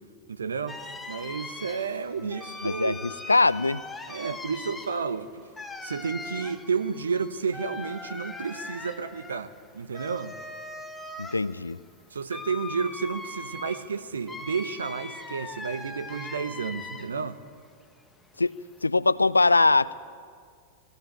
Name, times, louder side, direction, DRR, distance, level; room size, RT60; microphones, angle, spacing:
voice 1, 0.3-0.8 1.1-3.0 4.1-5.5 5.8-10.3 12.1-17.4, right 5 dB, 70° right, 1.0 m, -31 dB
sound 1, 0.7-17.3 17.7-18.8, left 3 dB, 10° left, 1.5 m, -41 dB
voice 2, 2.6-3.0 3.3-3.8 11.2-11.8 18.4-18.6 18.8-19.9, left 3 dB, 80° left, 0.4 m, -22 dB
20.0 x 16.0 x 9.0 m
figure-of-eight pair, 90°, 0 cm